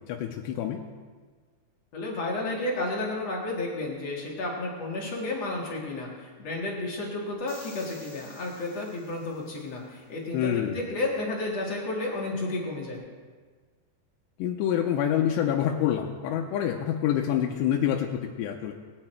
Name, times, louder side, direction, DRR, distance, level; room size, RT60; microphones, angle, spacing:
voice 1, 0.1-0.8 10.3-10.8 14.4-18.7, left 10 dB, 90° left, 1 dB, 3.0 m, -27 dB
voice 2, 1.9-13.0, left 2 dB, 50° left, -3 dB, 2.5 m, -32 dB
sound 1, 7.5-9.8, left 2 dB, 20° left, 1.5 m, -51 dB
19.0 x 9.9 x 4.4 m, 1.5 s
omnidirectional pair, 4.8 m